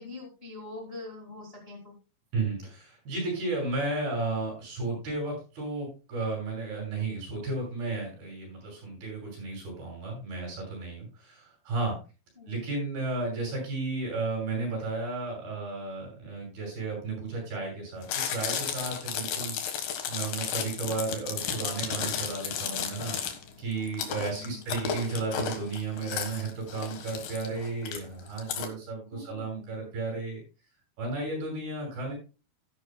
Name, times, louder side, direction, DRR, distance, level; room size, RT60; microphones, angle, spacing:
voice 1, 0.0-2.0 12.4-12.5 24.2-24.6 29.1-29.9, left 2 dB, 30° left, 0 dB, 1.2 m, -44 dB
voice 2, 2.3-12.0 12.5-19.8 20.1-23.2 23.6-30.4 31.0-32.1, right 3 dB, 80° right, -1 dB, 8.8 m, -33 dB
Chewing mastication, 18.0-28.7, left 8 dB, 70° left, 3.1 m, -33 dB
14.5 x 11.0 x 2.2 m, 0.32 s
omnidirectional pair, 4.4 m